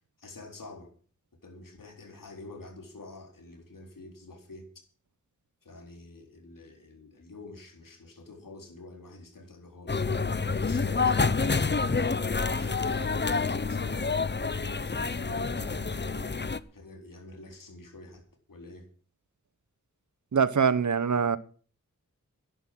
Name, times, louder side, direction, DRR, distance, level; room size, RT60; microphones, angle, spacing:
voice 1, 0.2-0.9 1.4-4.7 5.6-10.1 10.6-12.0 12.5-16.4 16.7-18.9, left 2 dB, 90° left, 4.0 m, -47 dB
sound 1, 9.9-16.6, left 4 dB, 35° left, 0.9 m, -28 dB
voice 2, 20.3-21.4, right 6 dB, 65° right, 1.1 m, -24 dB
11.5 x 10.0 x 7.7 m
wide cardioid pair, 50°, 32 cm